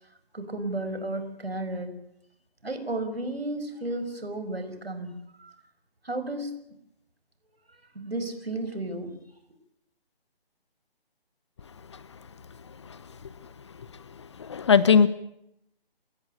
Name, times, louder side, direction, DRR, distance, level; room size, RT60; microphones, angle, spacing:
voice 1, 0.3-2.0 2.6-5.6 6.0-6.5 7.9-9.2, right 2 dB, 80° right, 9 dB, 5.3 m, -33 dB
voice 2, 14.4-15.1, left 6 dB, 30° left, 17 dB, 0.9 m, -18 dB
28.5 x 14.5 x 8.9 m, 0.80 s
figure-of-eight pair, 150°, 30 cm